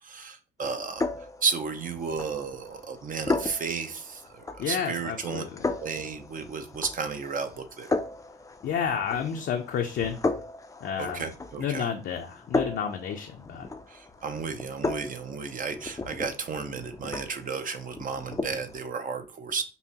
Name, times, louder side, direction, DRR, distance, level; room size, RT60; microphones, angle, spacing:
voice 1, 0.0-1.1 1.4-5.4 5.8-7.9 11.0-11.9 13.9-19.6, right 5 dB, 45° right, 8 dB, 0.6 m, -33 dB
sound 1, 0.6-18.8, left 3 dB, 15° left, 0.4 m, -35 dB
voice 2, 4.6-5.6 8.6-10.2 10.8-11.3 11.6-13.7, left 7 dB, 65° left, 2 dB, 0.6 m, -30 dB
5.4 x 2.1 x 2.8 m, 0.32 s
cardioid pair, 90°, 20 cm